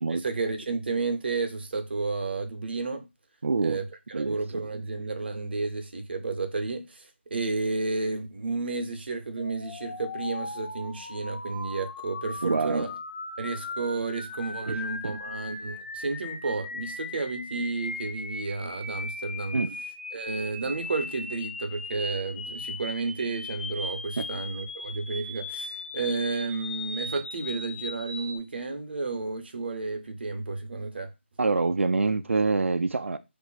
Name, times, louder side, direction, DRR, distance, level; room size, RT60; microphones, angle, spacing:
voice 1, 0.1-3.1 3.6-3.8 4.1-12.9 13.4-19.6 20.1-31.1, right 3 dB, 50° right, 0.7 m, -32 dB
voice 2, 3.4-3.8 4.1-4.4 12.4-12.8 14.7-14.8 15.0-15.2 19.5-19.8 24.2-24.3 31.4-33.2, right 3 dB, 75° right, 0.4 m, -26 dB
sound 1, 9.4-28.4, left 2 dB, 60° left, 0.9 m, -38 dB
2.5 x 2.2 x 3.9 m
figure-of-eight pair, 160°, 7 cm